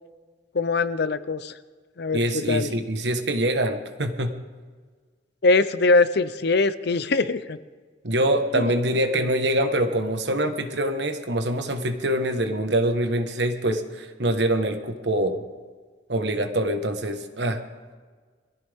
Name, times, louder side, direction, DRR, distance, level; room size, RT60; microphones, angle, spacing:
voice 1, 0.5-1.5 2.0-2.2 2.5-2.7 5.4-7.6 8.5-8.7 9.1-9.2, left 3 dB, 65° left, 13 dB, 0.7 m, -22 dB
voice 2, 2.1-4.3 8.0-15.4 16.1-17.6, right 1 dB, 70° right, 7 dB, 1.4 m, -24 dB
22.5 x 15.0 x 3.6 m, 1.5 s
head